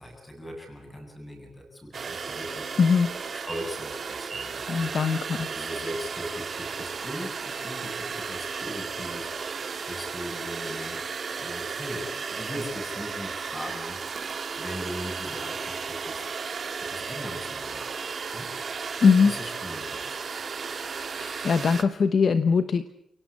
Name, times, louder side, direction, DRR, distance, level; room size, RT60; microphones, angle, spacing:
voice 1, 0.0-2.8 3.3-11.0 11.4-14.0 14.6-16.3 16.8-17.8 18.3-20.2, equal, 15° left, 2 dB, 7.8 m, -39 dB
sound 1, 1.9-21.8, right 5 dB, 40° right, 1.8 m, -34 dB
voice 2, 2.8-3.1 4.7-5.5 19.0-19.3 21.2-22.8, left 5 dB, 45° left, 11 dB, 1.0 m, -21 dB
30.0 x 18.0 x 8.6 m, 0.78 s
wide cardioid pair, 155°, 0 cm